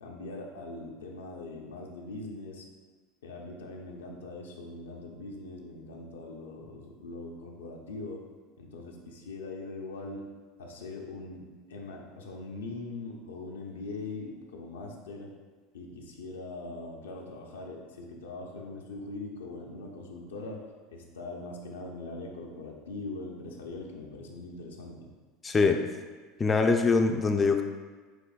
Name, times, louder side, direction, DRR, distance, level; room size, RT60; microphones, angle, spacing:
voice 1, 0.0-2.7 3.2-8.2 8.6-10.2 10.6-11.4 11.7-15.3 15.7-20.6 20.9-25.1, left 2 dB, 90° left, 0 dB, 0.5 m, -41 dB
voice 2, 25.4-25.8 26.4-27.6, left 4 dB, 25° left, 5 dB, 0.3 m, -23 dB
5.9 x 2.6 x 2.3 m, 1.4 s
hypercardioid pair, 90°, 0 cm